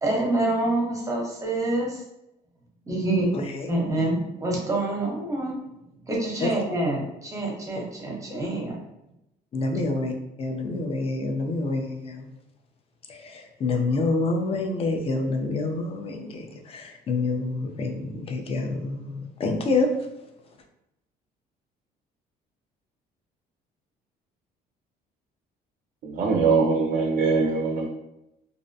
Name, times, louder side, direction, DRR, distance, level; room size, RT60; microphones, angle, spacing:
voice 1, 0.0-2.0 2.9-3.3 3.7-5.6 6.1-8.8, right 2 dB, 20° right, -2 dB, 0.7 m, -26 dB
voice 2, 3.3-3.7 6.4-6.5 9.5-10.1 10.4-12.3 13.1-19.9, left 3 dB, 35° left, 3 dB, 0.4 m, -27 dB
voice 3, 26.0-27.9, right 4 dB, 50° right, 0 dB, 0.4 m, -22 dB
2.5 x 2.1 x 2.6 m, 0.87 s
cardioid pair, 110°, 17 cm